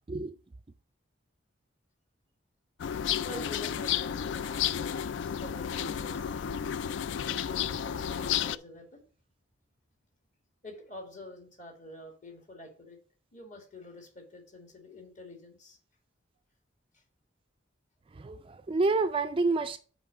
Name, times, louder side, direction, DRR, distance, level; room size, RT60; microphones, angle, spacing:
sound 1, 2.8-8.6, left 9 dB, 65° left, 0.3 m, -32 dB
voice 1, 3.2-6.6 7.3-9.1 10.6-13.0 13.3-15.8, left 2 dB, 40° left, 1.9 m, -47 dB
voice 2, 18.2-19.8, right 3 dB, 25° right, 0.3 m, -28 dB
6.0 x 4.6 x 6.4 m
head